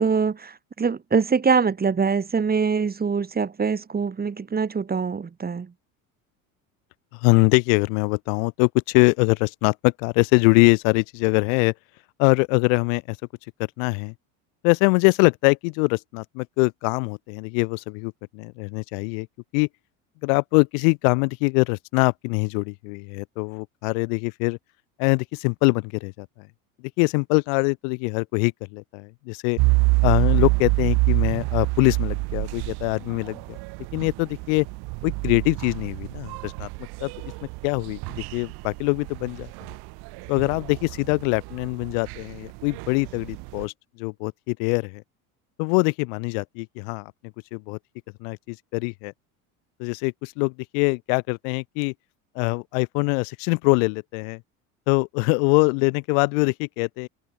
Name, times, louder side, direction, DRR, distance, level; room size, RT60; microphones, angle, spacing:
voice 1, 0.0-5.7, right 5 dB, 20° right, 2.0 m, -23 dB
voice 2, 7.1-11.7 12.2-13.2 13.8-14.1 14.6-19.3 19.5-19.7 20.2-24.6 25.0-26.5 27.0-29.6 30.0-33.6 33.9-34.7 35.0-36.7 37.0-37.3 37.6-39.5 40.3-43.7 44.0-45.0 45.6-47.1 47.5-47.8 48.2-49.1 49.8-51.9 52.3-54.4 54.9-57.1, left 40 dB or more, 70° left, 1.5 m, -23 dB
sound 1, 29.6-43.7, right 28 dB, 65° right, 1.5 m, -27 dB
hypercardioid pair, 85°, 41 cm